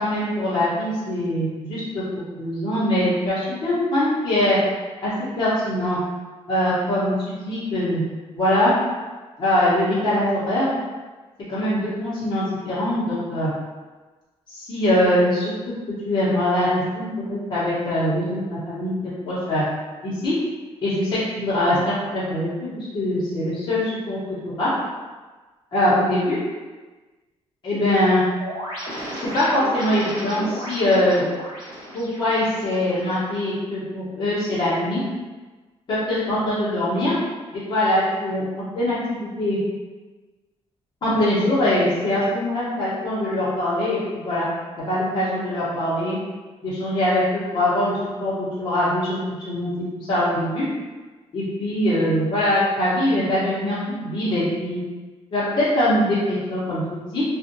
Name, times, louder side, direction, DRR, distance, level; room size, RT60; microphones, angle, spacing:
voice 1, 0.0-2.0 2.4-4.6 5.0-6.0 6.5-8.0 8.4-8.7 9.4-10.7 11.5-13.5 14.5-15.7 16.0-18.9 19.2-19.6 20.0-20.3 20.8-24.2 24.6-24.7 25.7-26.4 27.6-28.2 29.3-31.2 31.9-35.0 35.9-37.2 37.5-39.6 41.0-44.5 44.8-46.2 46.6-49.2 49.5-50.7 51.3-54.8 55.3-57.2, left 1 dB, 40° left, -11 dB, 1.0 m, -22 dB
sound 1, 28.4-33.4, equal, 40° right, 1.3 m, -34 dB
2.6 x 2.5 x 2.6 m, 1.3 s
cardioid pair, 155°, 11 cm